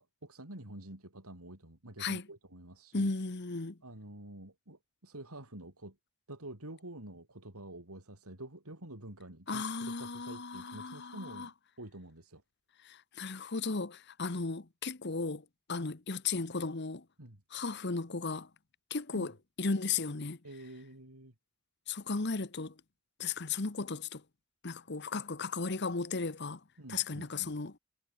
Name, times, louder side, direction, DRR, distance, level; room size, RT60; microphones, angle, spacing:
voice 1, 0.0-3.1 3.8-6.0 6.3-12.4 17.2-17.4 19.1-19.3 20.4-21.3 26.8-27.6, right 1 dB, 80° right, 4.5 m, -48 dB
voice 2, 2.9-3.8 9.5-11.5 12.8-15.4 15.7-17.0 17.5-18.5 18.9-19.3 19.6-20.4 21.9-22.7 23.2-24.2 24.6-26.6 26.9-27.7, left 4 dB, 50° left, 1.1 m, -35 dB
head